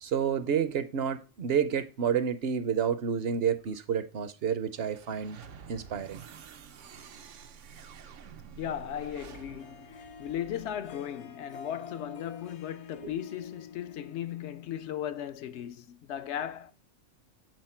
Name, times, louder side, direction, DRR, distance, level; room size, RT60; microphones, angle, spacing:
voice 1, 0.0-5.4 5.7-6.2 13.0-13.1, right 7 dB, 60° right, 0.8 m, -29 dB
sound 1, 4.7-11.0, right 7 dB, 85° right, 1.1 m, -50 dB
voice 2, 8.6-16.7, left 10 dB, 70° left, 0.8 m, -37 dB
Harp, 9.0-15.2, left 6 dB, 45° left, 0.4 m, -48 dB
8.0 x 4.3 x 4.3 m
omnidirectional pair, 1.2 m